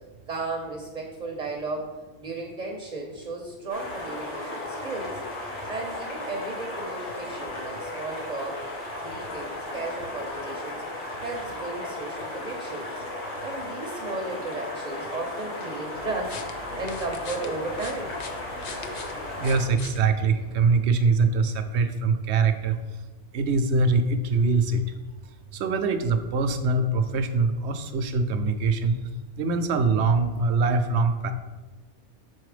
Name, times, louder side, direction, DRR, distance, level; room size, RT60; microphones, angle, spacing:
voice 1, 0.3-1.9 2.2-5.2 5.7-8.6 9.0-10.8 11.2-13.0 13.4-18.2, right 3 dB, 40° right, 1 dB, 0.8 m, -34 dB
sound 1, 3.7-19.6, left 2 dB, 75° left, 1.9 m, -35 dB
sound 2, 15.9-20.8, left 3 dB, 50° left, 0.5 m, -42 dB
voice 2, 19.4-22.8 23.3-24.8 25.5-29.0 29.4-31.3, right 4 dB, 75° right, 8 dB, 0.9 m, -23 dB
6.3 x 4.2 x 4.9 m, 1.3 s
omnidirectional pair, 1.2 m